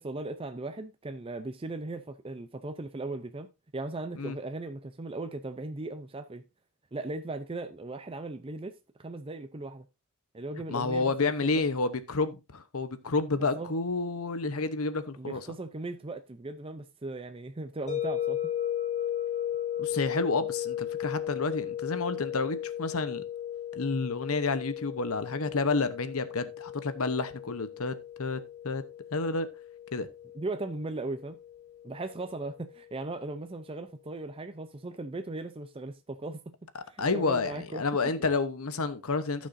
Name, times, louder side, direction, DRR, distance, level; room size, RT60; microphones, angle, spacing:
voice 1, 0.0-6.4 6.9-9.8 10.3-11.7 13.4-13.7 15.2-18.5 30.3-31.4 31.8-37.8, right 2 dB, 25° right, 0.5 m, -38 dB
voice 2, 10.7-15.4 19.8-23.2 23.7-28.4 28.6-28.8 29.1-29.5 29.9-30.1 37.0-39.5, left 3 dB, 75° left, 0.9 m, -30 dB
sound 1, 17.9-32.8, left 10 dB, 30° left, 5.8 m, -36 dB
15.5 x 6.3 x 2.6 m
head